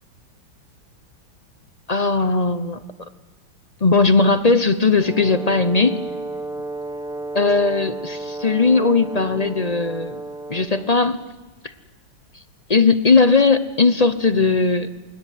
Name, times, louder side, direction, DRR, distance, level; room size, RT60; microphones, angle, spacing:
voice 1, 1.9-2.8 3.8-6.0 7.3-10.2 10.5-11.2 12.7-14.9, left 4 dB, 35° left, 11 dB, 0.6 m, -18 dB
Brass instrument, 5.0-11.0, right 2 dB, 5° right, 0.8 m, -32 dB
28.0 x 21.0 x 9.3 m, 1.2 s
omnidirectional pair, 2.1 m